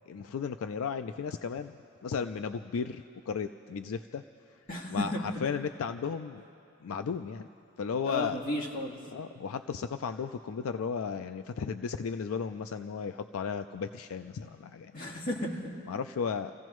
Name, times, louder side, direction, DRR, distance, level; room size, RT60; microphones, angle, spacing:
voice 1, 0.1-4.2 4.5-6.4 6.8-7.5 7.8-8.4 9.1-15.0 15.9-16.5, left 6 dB, 80° left, 9 dB, 0.4 m, -35 dB
voice 2, 4.7-5.2 8.1-9.0 14.9-15.7, left 1 dB, 40° left, -3 dB, 1.9 m, -34 dB
29.5 x 15.5 x 3.1 m, 2.6 s
head